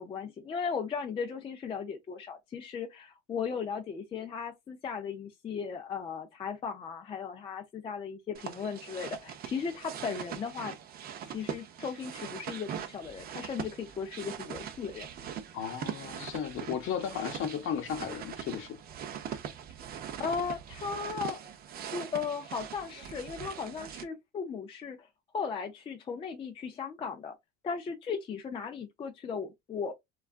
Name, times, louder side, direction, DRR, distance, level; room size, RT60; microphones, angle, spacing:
voice 1, 0.0-10.7 11.2-15.1 20.2-21.4 21.9-25.1 25.3-27.3 27.6-29.9, left 6 dB, 20° left, 0.4 m, -36 dB
sound 1, 8.3-24.0, right 8 dB, 30° right, 0.5 m, -41 dB
voice 2, 15.5-18.8, left 8 dB, 45° left, 0.8 m, -35 dB
3.4 x 2.3 x 2.4 m
cardioid pair, 150°, 29 cm